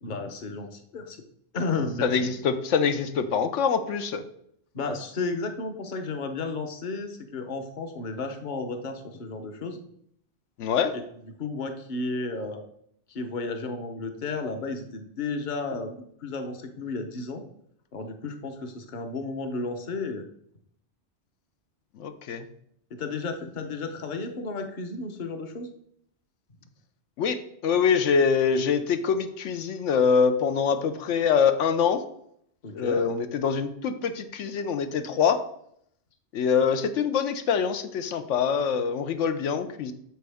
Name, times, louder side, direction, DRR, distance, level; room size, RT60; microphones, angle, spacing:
voice 1, 0.0-1.2 1.5-2.3 4.7-9.8 10.9-11.0 11.4-12.6 13.1-17.4 17.9-20.2 23.0-25.7 32.6-33.0, left 3 dB, 45° left, 5 dB, 1.0 m, -33 dB
voice 2, 2.0-4.2 10.6-10.9 22.0-22.4 27.2-27.4 27.6-32.0 32.7-35.4 36.3-39.9, left 6 dB, 90° left, 9 dB, 1.0 m, -24 dB
9.1 x 6.4 x 3.5 m, 0.71 s
omnidirectional pair, 1.2 m